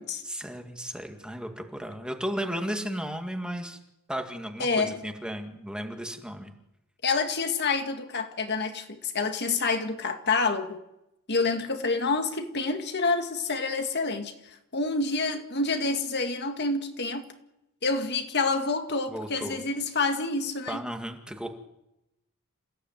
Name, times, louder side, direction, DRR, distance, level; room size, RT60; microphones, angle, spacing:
voice 1, 0.2-3.8 4.1-6.5 19.1-19.6 20.7-21.5, equal, 5° right, 2.0 m, -34 dB
voice 2, 4.6-5.0 7.0-10.8 11.3-14.3 14.7-17.3 17.8-20.8, left 3 dB, 50° left, 2.0 m, -28 dB
28.0 x 15.5 x 9.1 m
head